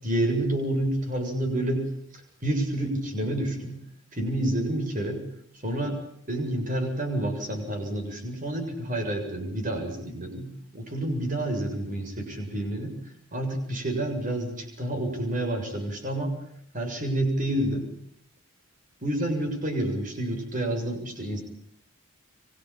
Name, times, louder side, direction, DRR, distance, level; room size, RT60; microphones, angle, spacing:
voice 1, 0.0-1.8 2.1-3.8 4.1-5.2 5.6-6.0 6.3-13.0 13.3-16.4 16.7-17.9 19.0-21.4, right 1 dB, 40° right, 4 dB, 7.5 m, -29 dB
25.0 x 25.0 x 8.9 m, 0.65 s
head